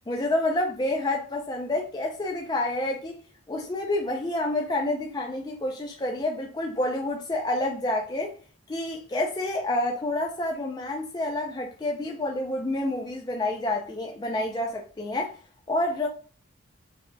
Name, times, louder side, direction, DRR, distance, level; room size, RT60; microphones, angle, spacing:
voice 1, 0.1-3.1 3.5-8.3 8.7-15.4 15.7-16.1, left 1 dB, 20° left, 0.4 m, -28 dB
4.9 x 3.1 x 2.2 m
head